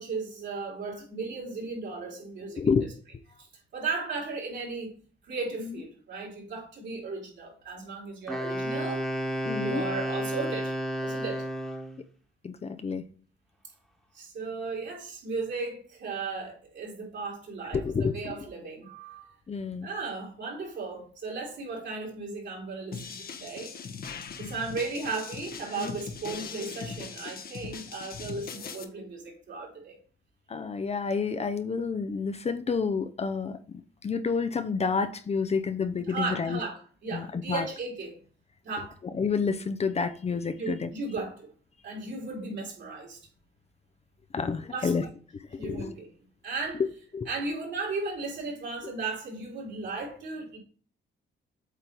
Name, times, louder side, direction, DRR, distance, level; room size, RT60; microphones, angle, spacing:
voice 1, 0.0-2.7 3.7-4.9 5.2-9.1 9.5-10.7 11.0-11.5 14.1-19.4 19.8-23.7 24.3-30.0 36.1-38.2 38.6-39.0 40.6-41.5 41.8-43.2 44.7-45.1 45.5-46.1 46.4-46.8 47.3-50.6, right 4 dB, 65° right, 3.6 m, -36 dB
voice 2, 2.6-2.9 9.4-9.8 12.4-13.0 17.7-18.4 19.5-19.9 25.8-25.9 30.5-36.6 37.1-37.7 39.2-40.9 44.3-45.0 45.6-45.9 47.1-47.3, left 5 dB, 30° left, 0.6 m, -29 dB
Wind instrument woodwind instrument, 8.3-12.0, equal, ahead, 1.4 m, -31 dB
sound 1, 22.9-28.8, left 6 dB, 50° left, 1.0 m, -40 dB
8.2 x 3.7 x 4.4 m
cardioid pair, 90°, 20 cm